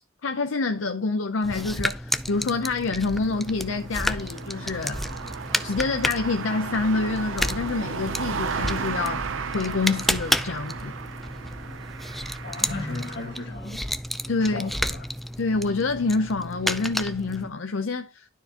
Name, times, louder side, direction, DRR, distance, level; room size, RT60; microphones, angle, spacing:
voice 1, 0.2-5.1 5.6-9.3 9.5-11.0 14.3-14.7 15.4-18.3, left 3 dB, 80° left, 0.6 m, -27 dB
sound 1, 1.4-17.5, equal, ahead, 0.4 m, -31 dB
sound 2, 2.8-13.5, right 5 dB, 80° right, 0.6 m, -35 dB
voice 2, 12.4-13.8 14.4-15.1, left 2 dB, 60° left, 1.8 m, -35 dB
12.0 x 4.5 x 2.9 m
head